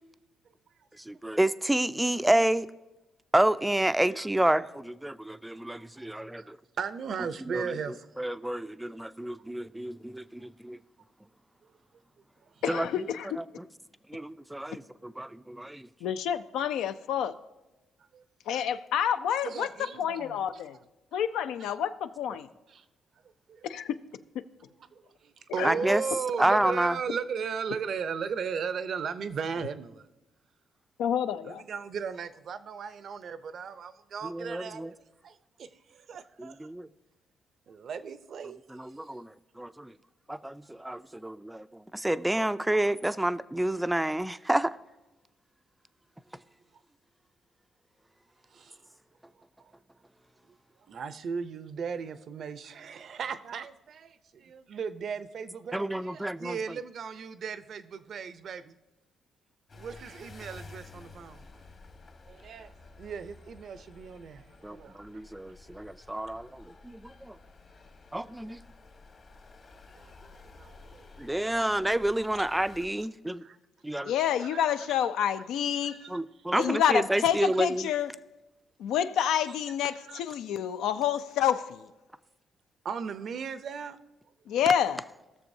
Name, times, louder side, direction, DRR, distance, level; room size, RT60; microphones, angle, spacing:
voice 1, 1.0-2.7 3.3-6.6 7.5-7.8 8.2-10.8 12.7-13.0 13.4-13.5 14.1-15.9 25.6-26.0 26.4-27.0 34.2-34.9 36.4-36.9 38.4-39.9 40.3-44.8 55.7-56.6 64.6-67.4 68.1-68.6 71.2-73.4 73.8-74.1 76.1-77.9, right 1 dB, 10° right, 0.3 m, -29 dB
voice 2, 6.0-8.0 18.1-18.2 19.4-20.4 22.7-22.8 23.5-23.7 24.9-30.1 31.4-35.0 35.2-36.6 37.7-38.6 48.5-48.8 50.9-58.7 59.7-61.4 62.3-62.7 63.0-65.2 70.0-70.1 70.6-71.1 73.4-73.6 74.5-74.6 75.8-76.1 80.0-80.2 82.8-84.0, right 6 dB, 60° right, 0.5 m, -37 dB
voice 3, 12.6-13.4 16.0-17.3 18.5-20.8 21.1-22.5 23.6-24.0 24.3-24.4 25.5-25.7 31.0-31.6 74.0-76.1 76.6-78.1 78.8-81.9 84.5-85.0, left 9 dB, 85° left, 0.4 m, -28 dB
sound 1, 59.7-72.9, left 3 dB, 45° left, 1.3 m, -52 dB
19.5 x 6.7 x 2.7 m
cardioid pair, 90°, 0 cm